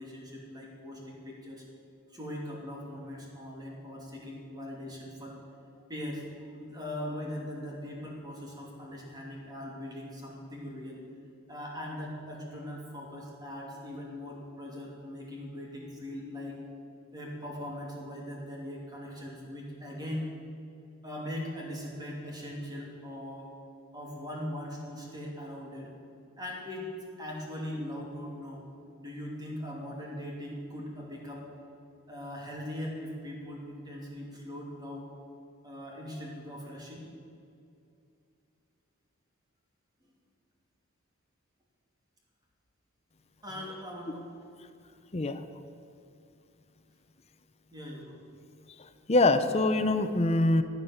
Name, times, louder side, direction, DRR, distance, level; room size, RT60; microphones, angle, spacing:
voice 1, 0.0-1.6 2.1-5.4 5.9-11.0 11.5-16.6 17.1-20.3 21.0-23.6 23.9-25.9 26.4-28.6 29.0-31.5 32.1-35.1 35.6-37.0 43.4-44.3 47.7-48.2, left 1 dB, 20° right, -2 dB, 2.8 m, -40 dB
voice 2, 49.1-50.6, left 2 dB, 30° left, 10 dB, 0.7 m, -24 dB
15.5 x 9.5 x 7.2 m, 2.5 s
head